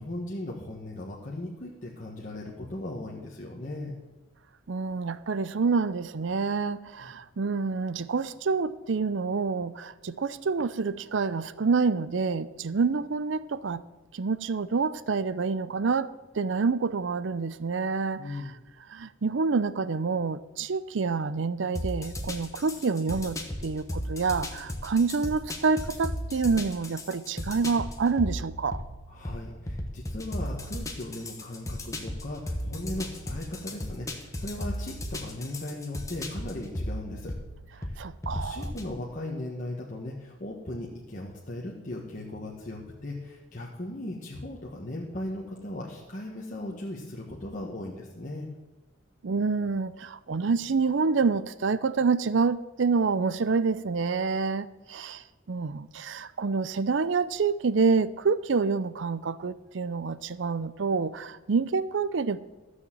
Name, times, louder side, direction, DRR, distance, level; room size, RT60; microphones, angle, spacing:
voice 1, 0.0-4.0 7.0-7.1 18.2-18.6 29.1-37.3 37.8-38.0 38.3-48.5, left 1 dB, 40° left, 1.4 m, -37 dB
voice 2, 4.7-13.8 14.1-16.1 16.3-18.4 18.9-28.8 38.0-38.7 49.2-62.4, right 4 dB, 70° right, 0.5 m, -27 dB
sound 1, 21.7-38.9, left 1 dB, 15° left, 1.2 m, -36 dB
14.0 x 6.5 x 7.5 m
head